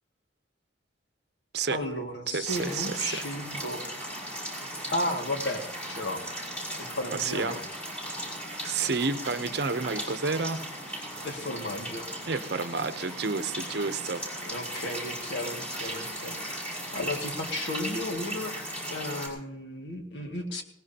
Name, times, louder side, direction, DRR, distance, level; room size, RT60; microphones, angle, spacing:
voice 1, 1.7-3.8 4.9-5.6 5.9-6.2 6.8-7.6 11.2-12.1 14.4-16.4 16.9-18.6 18.9-20.6, left 1 dB, 65° left, 3 dB, 2.1 m, -34 dB
voice 2, 2.3-3.2 7.1-7.6 8.6-10.7 12.3-14.2 15.8-16.0, right 4 dB, 60° right, 11 dB, 0.8 m, -30 dB
sound 1, 2.4-19.3, equal, 5° left, 5.5 m, -37 dB
20.5 x 18.5 x 2.9 m, 0.77 s
head